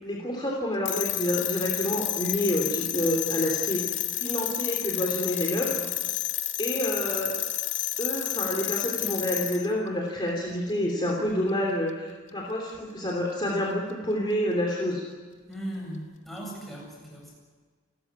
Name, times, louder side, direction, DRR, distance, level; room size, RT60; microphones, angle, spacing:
voice 1, 0.0-5.8 6.6-7.3 8.0-15.0, left 1 dB, 20° left, -1 dB, 3.2 m, -28 dB
sound 1, 0.9-9.7, left 13 dB, 65° left, 1.9 m, -30 dB
voice 2, 15.5-17.4, right 1 dB, ahead, -2 dB, 7.9 m, -38 dB
30.0 x 13.5 x 9.6 m, 1.5 s
head